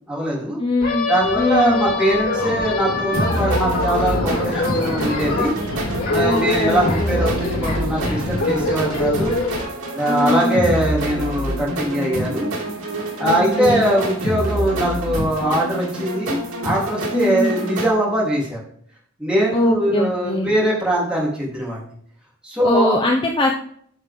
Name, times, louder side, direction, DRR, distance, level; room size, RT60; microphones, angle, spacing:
voice 1, 0.1-0.6 1.1-5.5 6.1-9.3 9.9-12.5 13.2-18.6 19.2-21.9 22.4-23.0, right 1 dB, 5° right, -6 dB, 3.7 m, -21 dB
voice 2, 0.6-1.1 1.4-1.9 6.2-7.2 10.1-10.7 13.2-13.9 17.1-17.5 19.5-20.5 22.6-23.5, left 1 dB, 20° left, 1 dB, 0.8 m, -21 dB
sound 1, 0.8-9.6, left 2 dB, 80° left, 4.2 m, -24 dB
sound 2, 3.1-17.9, right 1 dB, 75° right, 3.0 m, -26 dB
10.5 x 6.6 x 3.8 m, 0.63 s
head